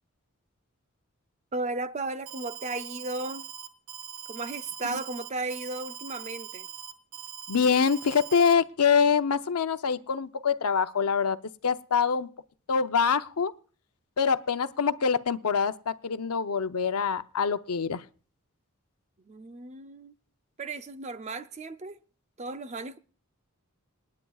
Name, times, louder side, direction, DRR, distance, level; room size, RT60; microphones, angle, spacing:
voice 1, 1.5-3.5 4.3-6.7 19.3-20.1 20.6-22.0 22.4-23.0, right 2 dB, 30° right, 0.5 m, -35 dB
Alarm, 2.3-8.5, right 9 dB, 70° right, 1.7 m, -42 dB
voice 2, 7.5-11.4 11.6-12.3 12.7-13.5 14.2-18.0, left 6 dB, 85° left, 0.7 m, -25 dB
27.0 x 9.7 x 2.4 m
head